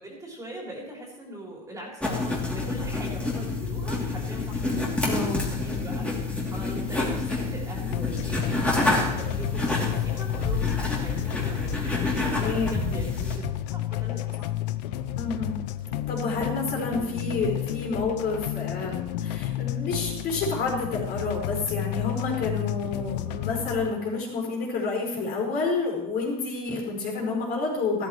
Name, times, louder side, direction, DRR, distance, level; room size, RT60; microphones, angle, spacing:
voice 1, 0.0-4.7 5.2-11.8 12.0-14.5, right 1 dB, 15° right, -2 dB, 3.7 m, -41 dB
sound 1, 2.0-13.4, left 3 dB, 5° left, 3.0 m, -28 dB
voice 2, 5.0-5.4 12.4-12.7 15.1-15.6 16.1-28.1, left 3 dB, 50° left, -2 dB, 5.1 m, -29 dB
sound 2, 7.9-23.9, left 13 dB, 80° left, 0.7 m, -32 dB
14.0 x 13.5 x 3.2 m, 0.89 s
supercardioid pair, 125°, 21 cm